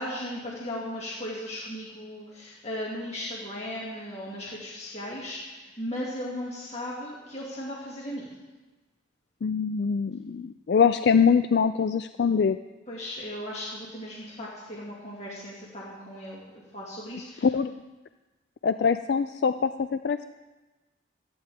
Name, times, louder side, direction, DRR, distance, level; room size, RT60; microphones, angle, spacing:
voice 1, 0.0-8.3 12.9-17.5, left 1 dB, 35° left, -5 dB, 2.1 m, -37 dB
voice 2, 9.4-12.6 17.4-17.7 18.6-20.3, left 6 dB, 55° left, 10 dB, 0.3 m, -23 dB
26.5 x 9.5 x 3.5 m, 1.2 s
head